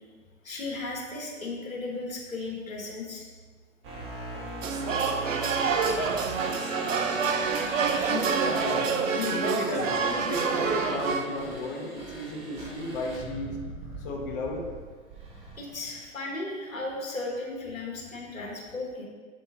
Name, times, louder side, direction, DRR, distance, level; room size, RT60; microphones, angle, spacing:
voice 1, 0.4-3.2 7.3-7.4 15.6-19.1, left 2 dB, 90° left, -2 dB, 1.1 m, -35 dB
sound 1, 3.8-16.0, right 1 dB, 15° right, 0.5 m, -40 dB
sound 2, 4.6-11.3, right 5 dB, 75° right, 0.5 m, -27 dB
voice 2, 8.0-13.6 14.0-14.6, left 2 dB, 45° left, 0 dB, 0.7 m, -34 dB
7.0 x 2.7 x 2.8 m, 1.5 s
figure-of-eight pair, 110°, 39 cm